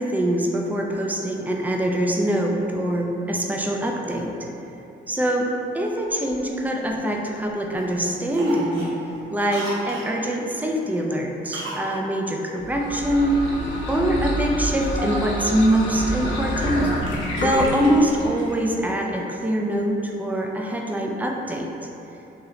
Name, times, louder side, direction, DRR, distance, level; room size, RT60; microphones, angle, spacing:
voice 1, 0.0-4.3 5.1-8.9 9.3-13.4 13.9-16.9 17.4-21.7, right 1 dB, 10° right, 1 dB, 0.4 m, -24 dB
Cough, 6.1-7.4 7.8-8.0 8.3-10.2 11.5-11.9 12.2-12.3, right 2 dB, 80° right, 0.7 m, -35 dB
sound 1, 12.6-18.6, equal, 75° left, 0.8 m, -27 dB
3.9 x 2.8 x 3.1 m, 3.0 s
cardioid pair, 90°, 20 cm